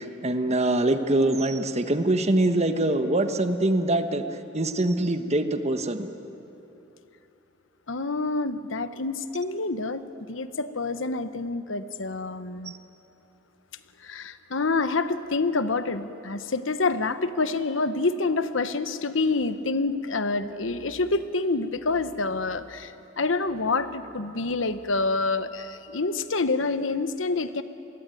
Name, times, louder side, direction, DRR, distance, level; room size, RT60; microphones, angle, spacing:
voice 1, 0.0-6.1, right 1 dB, 35° right, 8 dB, 1.3 m, -24 dB
voice 2, 7.9-12.7 14.0-27.6, left 3 dB, 80° left, 12 dB, 1.1 m, -27 dB
27.0 x 21.5 x 9.2 m, 3.0 s
head